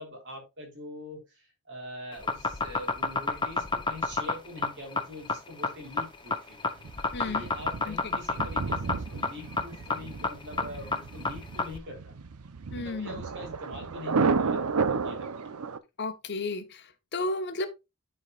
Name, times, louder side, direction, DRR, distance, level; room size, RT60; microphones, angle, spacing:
voice 1, 0.0-6.6 7.2-12.1 12.8-15.6, left 1 dB, 55° right, 3.4 m, -44 dB
sound 1, 2.1-11.8, left 3 dB, 20° left, 0.7 m, -29 dB
Thunder, 6.8-15.8, right 5 dB, 80° right, 0.7 m, -32 dB
voice 2, 7.1-7.4 7.9-8.2 12.7-13.2 16.0-17.7, left 2 dB, 50° left, 0.9 m, -33 dB
12.5 x 4.6 x 2.4 m
head